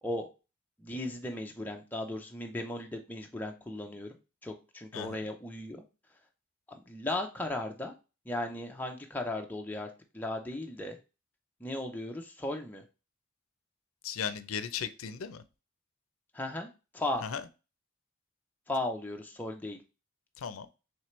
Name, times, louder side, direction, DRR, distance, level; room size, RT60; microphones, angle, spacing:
voice 1, 0.8-4.2 4.4-5.8 6.7-7.9 8.3-9.9 10.1-11.0 11.6-12.8 16.3-17.2 18.7-19.8, left 1 dB, 10° left, 0.5 m, -36 dB
voice 2, 14.0-15.4 17.2-17.4 20.4-20.7, left 7 dB, 85° left, 0.5 m, -36 dB
4.4 x 3.3 x 3.1 m
head